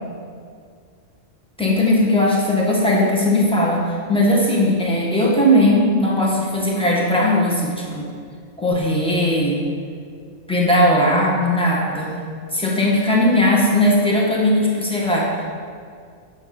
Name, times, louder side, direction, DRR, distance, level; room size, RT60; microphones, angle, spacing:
voice 1, 1.6-8.1 8.6-9.6 10.5-12.1 12.5-15.4, left 1 dB, 5° left, -4 dB, 1.8 m, -18 dB
9.6 x 6.1 x 7.2 m, 2.1 s
omnidirectional pair, 1.3 m